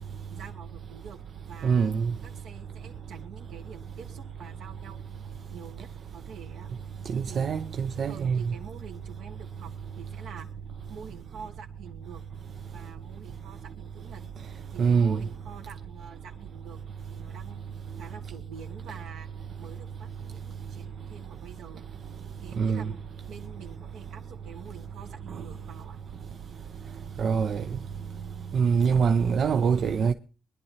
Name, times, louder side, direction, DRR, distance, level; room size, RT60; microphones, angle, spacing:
voice 1, 0.3-1.2 1.5-1.9 2.4-5.2 5.5-6.7 7.3-7.7 8.0-10.5 10.9-12.2 12.7-14.2 14.7-16.8 17.1-19.3 19.6-21.8 22.4-23.0 23.3-26.0, right 6 dB, 80° right, 2.2 m, -47 dB
voice 2, 1.6-2.1 7.1-8.4 14.8-15.2 22.6-22.8 27.2-27.6 28.5-30.1, right 6 dB, 60° right, 0.6 m, -24 dB
23.0 x 11.0 x 2.9 m
cardioid pair, 90°, 0 cm